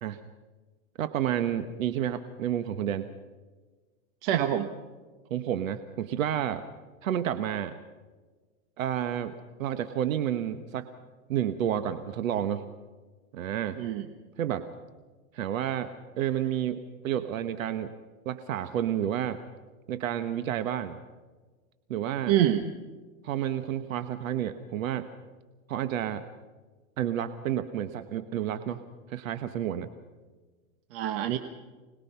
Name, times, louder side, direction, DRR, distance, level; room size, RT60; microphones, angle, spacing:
voice 1, 1.0-3.1 5.3-6.6 7.0-7.8 8.8-10.9 11.3-12.7 13.3-13.8 14.4-14.7 15.3-15.9 16.2-17.9 18.2-19.4 19.9-21.0 21.9-22.4 23.2-25.1 25.7-26.2 27.0-28.8 29.1-29.9, right 10 dB, 80° right, 10 dB, 1.3 m, -30 dB
voice 2, 4.2-4.7 13.8-14.1 22.3-22.6 30.9-31.4, right 11 dB, 45° right, 8 dB, 1.2 m, -25 dB
25.5 x 20.0 x 5.7 m, 1.3 s
supercardioid pair, 150°, 40 cm